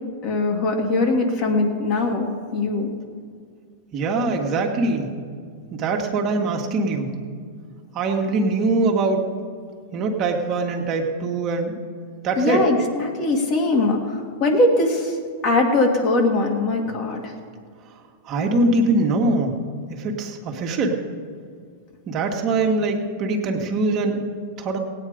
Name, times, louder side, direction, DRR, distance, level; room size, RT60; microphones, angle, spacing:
voice 1, 0.2-2.9 12.4-14.0 14.4-15.1 15.4-17.3, left 2 dB, 40° left, 1 dB, 2.2 m, -21 dB
voice 2, 3.9-5.1 5.7-7.1 7.9-9.2 9.9-11.7 12.2-12.6 18.3-19.5 19.9-21.0 22.1-24.2 24.6-24.8, right 2 dB, 40° right, 2 dB, 1.7 m, -22 dB
17.0 x 9.1 x 5.1 m, 2.1 s
hypercardioid pair, 115°, 0 cm